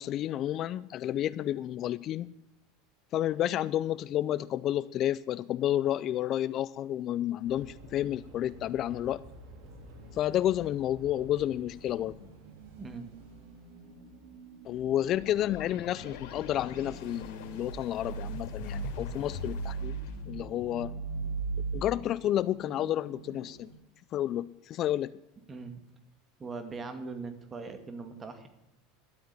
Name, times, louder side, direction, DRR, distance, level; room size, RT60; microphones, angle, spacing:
voice 1, 0.0-2.3 3.1-9.2 10.1-12.2 14.6-20.0 20.3-20.9 21.7-23.7 24.1-25.1, left 12 dB, 45° left, 18 dB, 0.4 m, -30 dB
sound 1, 7.4-13.4, right 1 dB, 60° right, 3.2 m, -51 dB
sound 2, 11.8-23.7, right 4 dB, 80° right, 3.6 m, -50 dB
voice 2, 12.8-13.1 25.5-25.8 26.4-28.5, right 4 dB, 25° right, 8 dB, 2.1 m, -40 dB
sound 3, 14.9-21.7, right 2 dB, 75° left, 3.8 m, -38 dB
12.0 x 8.5 x 9.5 m, 0.89 s
supercardioid pair, 110°, 0 cm